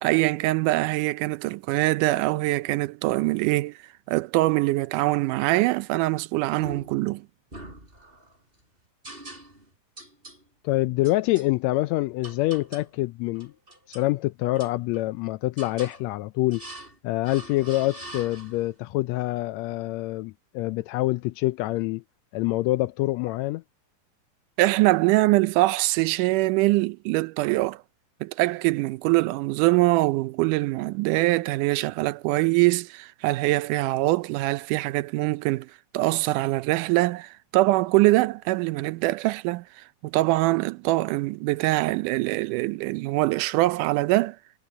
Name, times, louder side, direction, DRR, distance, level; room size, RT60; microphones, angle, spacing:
voice 1, 0.0-3.8 4.1-7.3 24.6-27.8 28.2-44.4, right 19 dB, 85° right, 2.1 m, -23 dB
sound 1, 6.6-7.1 7.5-8.4 9.0-9.7 10.0-10.4 11.0-11.5 12.2-13.0 13.3-14.1 14.5-15.2 15.6-16.0 16.5-17.0 17.2-18.7, right 1 dB, 15° right, 5.9 m, -43 dB
voice 2, 10.6-13.5 13.9-16.6 17.0-22.0 22.3-23.6, left 18 dB, 85° left, 1.5 m, -26 dB
omnidirectional pair, 3.6 m